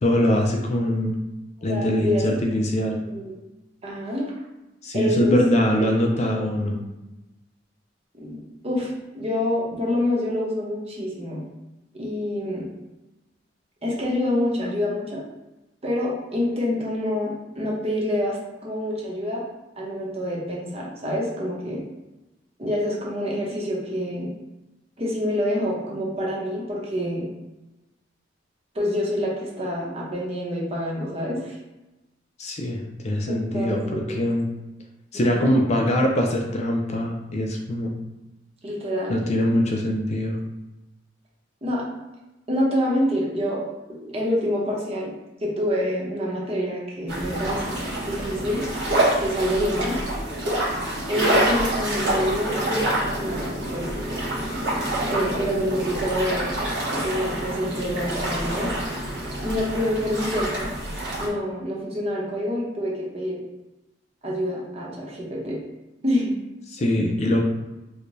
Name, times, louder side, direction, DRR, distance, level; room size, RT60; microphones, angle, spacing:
voice 1, 0.0-1.1 1.6-3.0 4.8-6.8 32.4-34.5 35.1-37.9 39.1-40.4 66.7-67.4, left 1 dB, 40° left, 1 dB, 0.4 m, -22 dB
voice 2, 1.7-2.6 3.1-3.3 3.8-4.3 4.9-5.4 5.8-5.9 6.3-6.5 8.1-11.4 11.9-12.7 13.8-15.2 15.8-19.4 19.8-21.8 22.6-24.3 25.0-27.3 28.7-31.6 33.3-34.2 35.1-35.5 38.6-39.2 41.6-41.8 42.5-43.6 43.9-45.1 45.4-47.8 48.1-48.6 49.2-50.0 51.1-52.9 53.2-53.5 53.7-53.9 55.1-56.5 56.9-58.7 59.4-60.7 61.2-63.4 64.2-65.6 66.0-66.3, left 1 dB, 35° right, -4 dB, 0.8 m, -27 dB
sound 1, 47.1-61.3, right 1 dB, 80° right, 1.1 m, -26 dB
4.7 x 2.2 x 2.6 m, 1.0 s
head